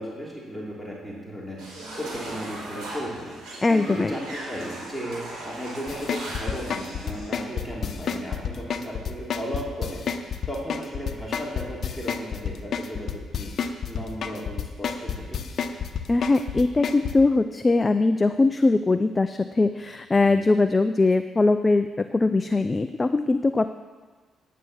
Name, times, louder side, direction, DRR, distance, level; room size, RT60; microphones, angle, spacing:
voice 1, 0.0-1.6 2.0-3.4 3.7-10.0 10.5-13.5 13.8-15.4 20.2-20.5, equal, ahead, -5 dB, 3.0 m, -35 dB
sound 1, 1.6-7.3, right 1 dB, 75° right, 4.7 m, -38 dB
voice 2, 3.6-4.1 16.1-23.7, left 3 dB, 25° left, 9 dB, 0.4 m, -21 dB
sound 2, 5.9-17.1, left 7 dB, 55° left, 0.9 m, -29 dB
9.5 x 9.4 x 7.1 m, 1.4 s
cardioid pair, 90°, 0 cm